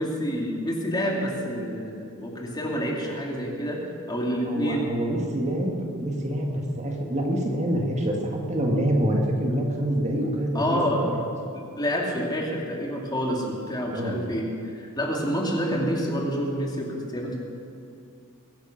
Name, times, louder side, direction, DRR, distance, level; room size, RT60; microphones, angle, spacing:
voice 1, 0.0-3.8 4.1-4.9 10.5-11.0 11.5-14.5 14.7-17.4, equal, 20° left, -1 dB, 2.4 m, -28 dB
voice 2, 4.5-11.1 13.9-14.2, right 1 dB, 30° right, 1 dB, 1.9 m, -26 dB
22.0 x 10.5 x 5.9 m, 2.5 s
head